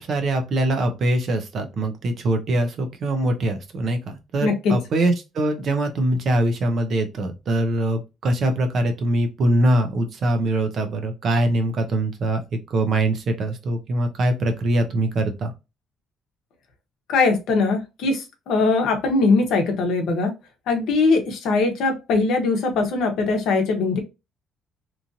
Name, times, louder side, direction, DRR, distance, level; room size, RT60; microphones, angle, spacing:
voice 1, 0.0-12.4 12.7-15.5, right 1 dB, 40° right, 6 dB, 0.6 m, -23 dB
voice 2, 4.4-4.7 17.1-20.3 20.7-24.0, left 3 dB, 65° left, 4 dB, 0.9 m, -21 dB
2.9 x 2.6 x 2.6 m, 0.25 s
cardioid pair, 180°, 0 cm